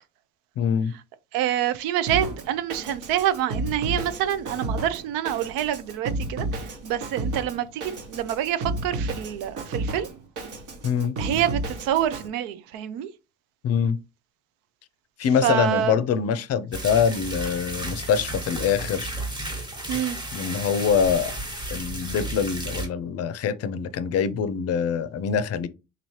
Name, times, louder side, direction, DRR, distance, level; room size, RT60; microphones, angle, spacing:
voice 1, 0.6-0.9 10.8-11.1 13.6-14.0 15.2-19.1 20.3-21.4 21.7-25.7, left 7 dB, 50° left, 0.5 m, -24 dB
voice 2, 1.3-10.1 11.2-13.1 15.4-16.0 19.9-20.2, right 11 dB, 90° right, 0.6 m, -26 dB
Drum kit, 2.1-12.3, right 2 dB, 65° right, 1.2 m, -32 dB
Shower Sequence, 16.7-22.9, right 1 dB, 15° right, 1.1 m, -33 dB
4.0 x 2.8 x 3.1 m
cardioid pair, 120°, 33 cm